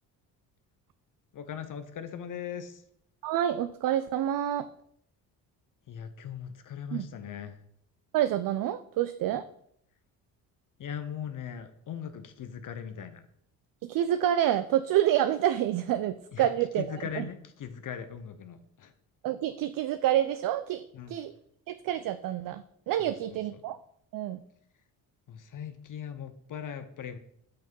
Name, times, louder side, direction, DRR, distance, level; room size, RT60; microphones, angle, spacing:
voice 1, 1.3-2.8 5.9-7.6 10.8-13.2 16.3-16.5 16.8-18.9 20.9-21.1 23.0-23.4 25.3-27.2, left 8 dB, 50° left, 9 dB, 0.7 m, -39 dB
voice 2, 3.2-4.7 6.9-7.1 8.1-9.4 13.8-17.3 19.2-21.3 21.7-23.8 24.1-24.4, right 11 dB, 55° right, 12 dB, 0.5 m, -28 dB
5.6 x 5.6 x 5.3 m, 0.69 s
supercardioid pair, 75°, 41 cm